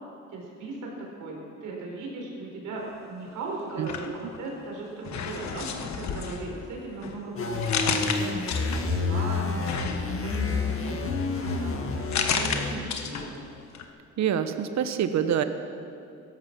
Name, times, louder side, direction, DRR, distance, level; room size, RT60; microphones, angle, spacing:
voice 1, 0.3-11.9 12.2-13.5, right 3 dB, 85° right, -1 dB, 4.2 m, -38 dB
sound 1, 3.7-4.7 5.0-9.1 9.6-13.5 13.7-13.9, left 6 dB, 65° left, 1.4 m, -33 dB
sound 2, 7.4-12.8, left 4 dB, 45° left, 1.9 m, -29 dB
voice 2, 14.2-15.4, right 9 dB, 65° right, 9 dB, 1.1 m, -25 dB
16.5 x 14.0 x 6.0 m, 2.5 s
cardioid pair, 90°, 30 cm